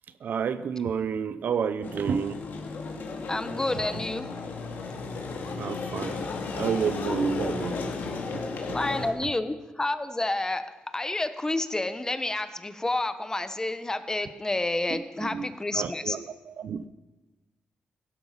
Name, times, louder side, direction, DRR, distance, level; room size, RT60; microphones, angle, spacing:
voice 1, 0.2-2.4 5.6-6.2 6.6-7.8 8.3-8.5 15.2-15.5 15.7-16.2 16.6-16.9, right 6 dB, 70° right, 13 dB, 0.7 m, -29 dB
sound 1, 1.8-9.1, left 4 dB, 80° left, 2.6 m, -34 dB
voice 2, 3.3-4.3 8.7-10.6 10.9-16.2, left 2 dB, 20° left, 11 dB, 1.1 m, -29 dB
17.0 x 12.5 x 5.8 m, 1.1 s
cardioid pair, 90°, 3 cm